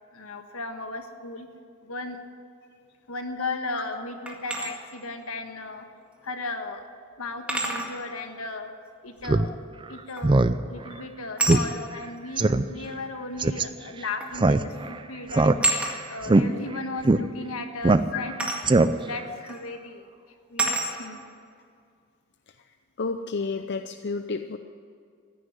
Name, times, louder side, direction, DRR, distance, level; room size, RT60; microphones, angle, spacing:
voice 1, 0.1-1.5 1.8-2.2 3.1-5.9 6.2-6.9 7.2-8.7 9.0-9.5 9.9-15.6 16.1-18.5 19.1-20.0 20.5-21.2, left 3 dB, 75° left, 6 dB, 1.5 m, -36 dB
sound 1, 4.3-4.7 6.2-6.3 7.5-7.9 10.2-10.5 11.4-11.7 12.8-12.9 14.2-14.4 14.7-15.0 15.6-16.0 18.4-18.7 19.5-19.6 20.6-20.9, right 2 dB, 5° right, 2.0 m, -27 dB
Speech synthesizer, 9.2-9.5 9.8-9.9 10.2-10.6 10.9-11.0 11.5-11.6 11.9-12.0 12.4-12.6 13.4-13.6 14.3-14.9 15.3-15.9 16.2-16.4 17.0-17.2 17.8-18.3 18.6-19.2, right 2 dB, 25° right, 0.4 m, -20 dB
voice 2, 23.0-24.6, left 4 dB, 50° left, 8 dB, 0.6 m, -30 dB
15.0 x 10.0 x 9.7 m, 2.2 s
head